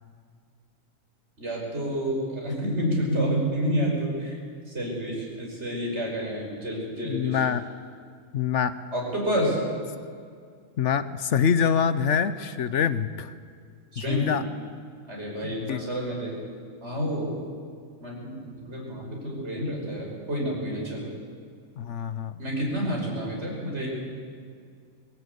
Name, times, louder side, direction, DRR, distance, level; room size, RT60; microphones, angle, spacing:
voice 1, 1.4-4.4 4.7-7.4 8.9-9.6 13.9-14.3 15.1-16.3 16.8-17.3 18.0-21.1 22.4-23.9, equal, 50° right, -2 dB, 6.0 m, -29 dB
voice 2, 7.0-7.6 8.3-8.7 10.8-13.3 14.1-14.4 15.4-15.8 21.8-22.4, left 7 dB, 60° left, 13 dB, 1.1 m, -25 dB
20.5 x 16.5 x 8.3 m, 2.2 s
omnidirectional pair, 1.5 m